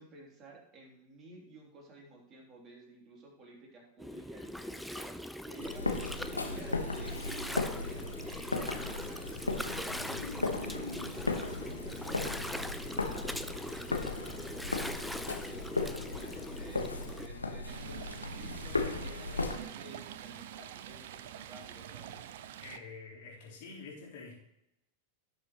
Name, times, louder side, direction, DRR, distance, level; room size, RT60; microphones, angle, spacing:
voice 1, 0.0-22.2, right 2 dB, 30° right, -1 dB, 3.0 m, -54 dB
Gurgling, 4.0-17.3, equal, ahead, 0.5 m, -41 dB
sound 1, 5.6-19.5, left 3 dB, 80° left, 1.2 m, -36 dB
Stream, 17.7-22.8, right 11 dB, 55° right, 0.6 m, -46 dB
voice 2, 22.6-24.4, left 4 dB, 50° left, -5 dB, 3.7 m, -47 dB
16.5 x 6.6 x 3.0 m, 0.85 s
figure-of-eight pair, 90°, 0 cm